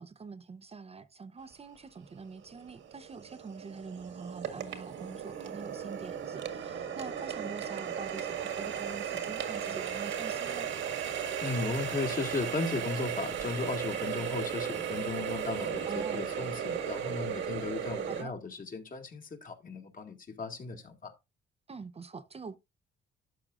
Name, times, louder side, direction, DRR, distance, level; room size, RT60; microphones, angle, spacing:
voice 1, 0.0-10.7 15.8-16.3 18.0-18.4 21.7-22.6, right 4 dB, 30° right, 0.7 m, -45 dB
Water tap faucet, 1.7-1.8 2.4-18.2, right 8 dB, 75° right, 1.8 m, -36 dB
voice 2, 11.4-21.1, left 4 dB, 45° left, 2.1 m, -36 dB
12.0 x 6.6 x 2.5 m
cardioid pair, 90°, 20 cm